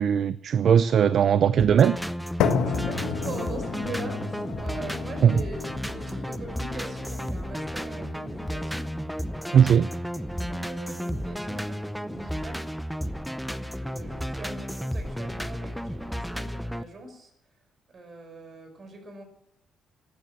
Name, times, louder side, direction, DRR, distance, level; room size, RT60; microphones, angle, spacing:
voice 1, 0.0-2.0 5.2-5.3 9.5-9.9, right 8 dB, 60° right, 0.5 m, -19 dB
sound 1, 1.6-16.8, equal, ahead, 0.7 m, -33 dB
sound 2, 2.4-10.4, left 6 dB, 90° left, 1.5 m, -33 dB
voice 2, 2.4-8.9 9.4-12.7 13.3-17.3 17.9-19.2, right 2 dB, 45° right, 5.2 m, -42 dB
15.5 x 10.5 x 7.7 m
cardioid pair, 90°, 0 cm